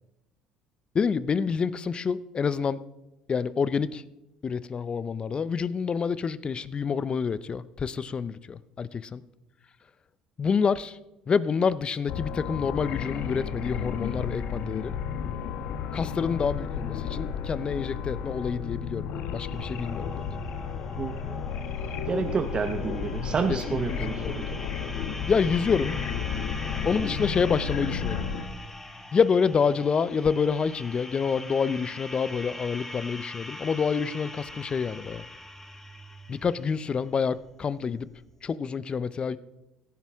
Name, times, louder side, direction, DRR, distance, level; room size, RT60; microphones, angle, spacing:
voice 1, 0.9-2.8 3.3-4.0 4.4-9.2 10.4-11.0 11.3-14.9 15.9-20.1 23.5-24.3 25.3-25.9 26.8-28.3 29.1-35.2 36.3-38.1 38.4-39.4, left 6 dB, 35° left, 17 dB, 0.6 m, -27 dB
sound 1, 12.1-28.4, left 7 dB, 65° left, 1.1 m, -33 dB
sound 2, 19.5-38.4, left 1 dB, 15° left, 1.5 m, -42 dB
voice 2, 21.0-21.4 22.1-24.6, right 6 dB, 35° right, 8 dB, 0.8 m, -30 dB
16.5 x 10.5 x 3.6 m, 0.94 s
hypercardioid pair, 70°, 3 cm